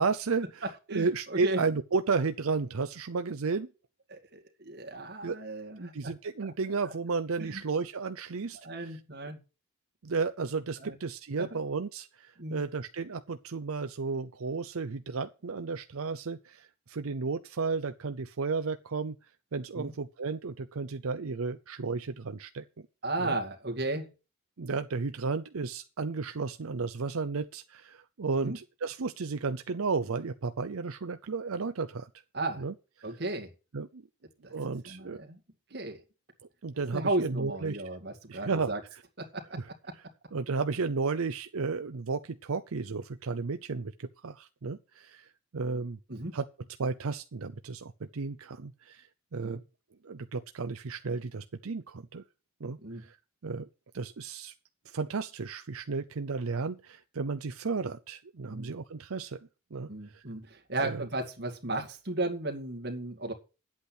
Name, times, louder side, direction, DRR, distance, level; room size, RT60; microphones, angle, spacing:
voice 1, 0.0-3.7 5.2-5.4 5.8-9.0 10.0-19.2 19.5-22.9 23.2-23.4 24.6-32.1 32.6-32.7 33.7-34.0 34.5-35.2 36.6-37.8 38.3-39.0 39.6-39.7 40.3-46.0 46.3-46.4 46.8-49.6 50.0-52.2 52.6-53.2 53.4-53.7 53.9-54.5 54.9-59.4 59.7-60.3 60.8-61.1, right 4 dB, 80° right, 0.6 m, -33 dB
voice 2, 0.9-1.6 4.1-6.1 6.4-6.5 7.4-7.6 8.5-9.4 10.8-11.0 11.4-11.6 12.4-12.6 19.7-19.9 23.0-24.1 28.3-28.6 32.3-32.6 33.0-33.5 34.4-34.5 34.8-35.4 35.7-36.0 36.9-38.8 39.2-39.9 46.1-46.4 49.4-49.6 52.8-53.0 58.5-58.7 59.9-63.3, right 2 dB, 50° right, 2.1 m, -35 dB
10.0 x 8.4 x 6.0 m
head